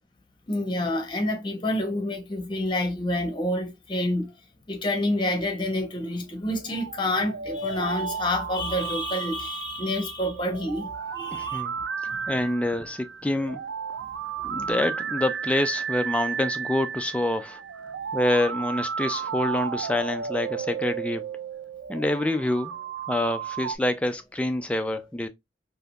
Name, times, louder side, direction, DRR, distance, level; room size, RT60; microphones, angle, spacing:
voice 1, 0.5-4.3 4.7-11.6 12.1-12.3, left 1 dB, 25° left, 0.8 m, -28 dB
sound 1, 6.6-23.8, right 7 dB, 80° right, 0.4 m, -33 dB
voice 2, 11.3-11.7 12.3-13.7 14.4-17.6 18.1-21.3 21.9-22.8 23.1-25.3, left 1 dB, 5° left, 0.3 m, -26 dB
3.5 x 2.7 x 2.4 m
head